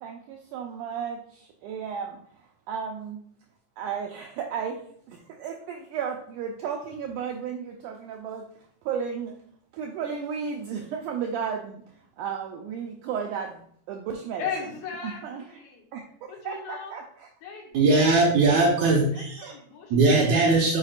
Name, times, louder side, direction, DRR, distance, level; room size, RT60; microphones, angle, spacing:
voice 1, 0.0-3.2 3.8-4.8 5.1-8.5 8.9-9.4 9.7-13.6 13.9-14.4 15.0-15.4 15.9-17.3 19.4-19.5, right 7 dB, 85° right, 2 dB, 1.8 m, -34 dB
voice 2, 14.4-15.8 16.3-16.9 17.4-17.8 18.1-18.6 19.1-20.6, left 6 dB, 75° left, 0 dB, 2.9 m, -37 dB
voice 3, 17.7-19.5 19.9-20.8, right 3 dB, 65° right, -2 dB, 2.1 m, -20 dB
7.9 x 4.9 x 2.4 m, 0.63 s
omnidirectional pair, 4.1 m